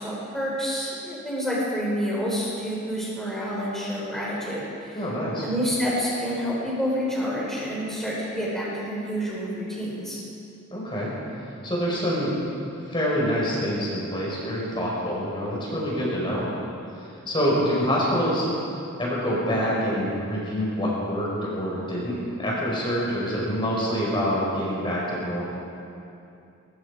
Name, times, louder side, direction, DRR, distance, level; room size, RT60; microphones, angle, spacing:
voice 1, 0.0-5.1 5.4-10.2 17.7-17.8, equal, ahead, -6 dB, 5.2 m, -28 dB
voice 2, 4.9-5.5 10.7-11.1 11.6-12.3 12.8-16.5 17.0-18.5 19.0-25.4, equal, 25° left, -5 dB, 5.3 m, -26 dB
23.5 x 22.5 x 5.1 m, 2.6 s
head